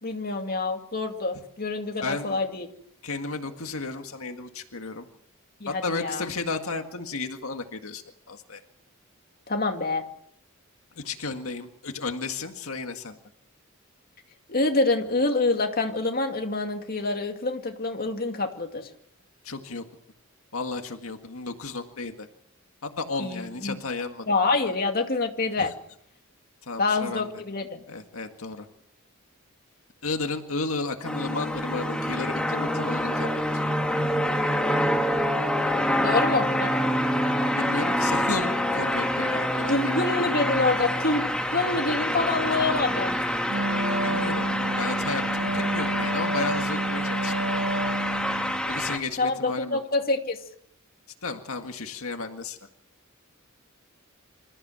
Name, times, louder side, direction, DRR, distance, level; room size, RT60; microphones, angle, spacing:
voice 1, 0.0-2.7 5.6-6.2 9.5-10.0 14.5-18.9 23.2-23.8 24.3-25.7 26.8-27.8 36.0-36.7 39.7-43.2 49.2-50.4, left 3 dB, 45° left, 4 dB, 2.3 m, -26 dB
voice 2, 2.0-2.4 3.0-5.1 5.7-8.6 11.0-13.2 19.4-19.8 20.5-22.3 22.8-24.3 25.6-25.7 26.7-27.3 27.9-28.7 30.0-33.3 37.6-39.9 44.0-44.5 44.8-47.3 48.7-49.8 51.2-52.6, left 3 dB, 85° left, 5 dB, 1.9 m, -33 dB
sound 1, 31.0-49.0, equal, 5° left, 2.3 m, -26 dB
Wind instrument woodwind instrument, 43.5-48.6, right 2 dB, 90° right, 2.7 m, -29 dB
27.0 x 14.5 x 7.6 m, 0.71 s
head